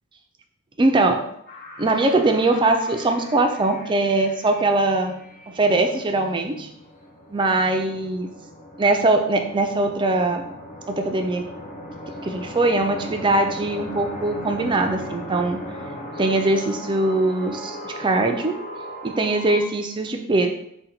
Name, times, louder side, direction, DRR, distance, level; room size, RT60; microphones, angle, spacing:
voice 1, 0.8-1.2 1.8-5.1 5.5-6.7 7.3-8.3 8.8-10.4 10.9-11.4 12.2-15.6 16.2-18.6 19.0-20.5, right 2 dB, 20° right, 4 dB, 0.3 m, -21 dB
sound 1, 1.5-19.6, equal, 40° left, 0.6 m, -38 dB
3.8 x 2.2 x 4.1 m, 0.75 s
head